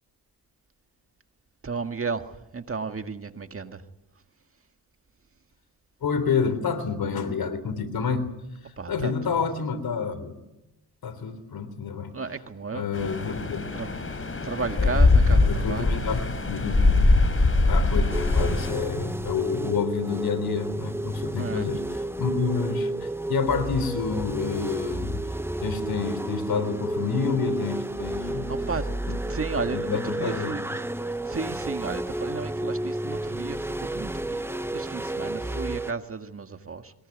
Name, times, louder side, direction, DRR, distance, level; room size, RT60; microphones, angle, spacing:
voice 1, 1.6-3.8 8.8-9.4 12.1-12.9 13.7-13.9 14.4-16.2 21.4-21.7 28.2-28.9 29.3-30.6 31.3-36.9, right 4 dB, 35° right, 7 dB, 1.9 m, -34 dB
voice 2, 6.0-8.3 8.6-10.4 11.0-12.2 12.7-13.7 14.8-15.0 15.4-17.1 17.6-25.2 25.6-28.8 29.1-30.6, left 5 dB, 70° left, 11 dB, 3.7 m, -29 dB
sound 1, 12.9-18.7, left 3 dB, 35° left, 4.5 m, -22 dB
sound 2, 18.1-35.9, right 1 dB, 5° right, 0.8 m, -31 dB
22.5 x 20.0 x 9.5 m, 0.94 s
cardioid pair, 75°, 38 cm